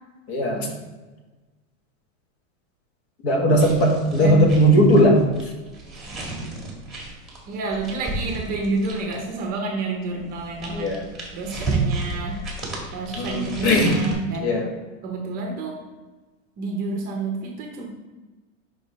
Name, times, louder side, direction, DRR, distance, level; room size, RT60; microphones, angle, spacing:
voice 1, 0.3-0.7 3.2-5.2 10.7-11.0 13.2-13.9 14.4-14.7, equal, 50° left, 1 dB, 1.6 m, -18 dB
sound 1, 3.5-9.3 10.2-14.1, right 3 dB, ahead, 1.4 m, -32 dB
voice 2, 4.2-4.5 7.5-11.0 11.3-12.4 12.9-14.6 15.0-15.8 16.6-17.9, right 3 dB, 20° right, 2 dB, 0.7 m, -29 dB
5.6 x 5.4 x 4.1 m, 1.2 s
supercardioid pair, 170°, 41 cm